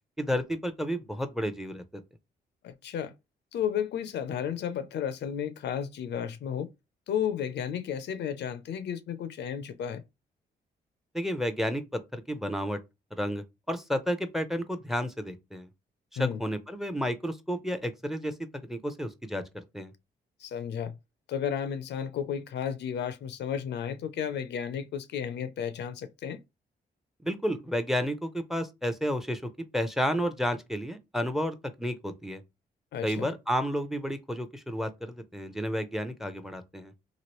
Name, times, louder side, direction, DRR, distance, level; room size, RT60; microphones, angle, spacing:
voice 1, 0.2-2.0 11.1-12.8 13.1-15.7 16.1-18.3 18.7-19.4 19.7-19.9 27.2-29.4 29.7-32.4 33.0-36.9, equal, ahead, 0.5 m, -31 dB
voice 2, 2.6-3.1 3.5-6.7 7.1-10.0 16.2-16.4 20.4-20.9 21.3-26.4 32.9-33.3, left 8 dB, 70° left, 0.4 m, -33 dB
3.0 x 2.5 x 2.9 m
supercardioid pair, 60°, 19 cm